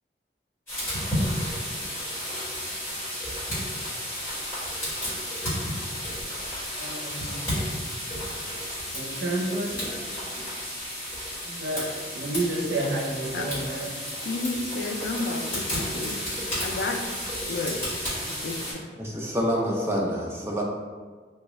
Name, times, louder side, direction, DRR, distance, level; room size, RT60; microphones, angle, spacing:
sound 1, 0.7-18.7, equal, 15° left, 1.4 m, -32 dB
voice 1, 6.8-7.4 8.9-9.9 11.4-11.9 12.1-13.9, right 2 dB, 75° right, -1 dB, 0.6 m, -30 dB
voice 2, 14.2-16.2 16.6-17.0 17.5-17.8 18.4-18.6, left 3 dB, 70° left, 4 dB, 0.4 m, -31 dB
voice 3, 19.0-20.6, equal, 15° right, -3 dB, 0.4 m, -27 dB
3.4 x 2.3 x 3.1 m, 1.5 s
head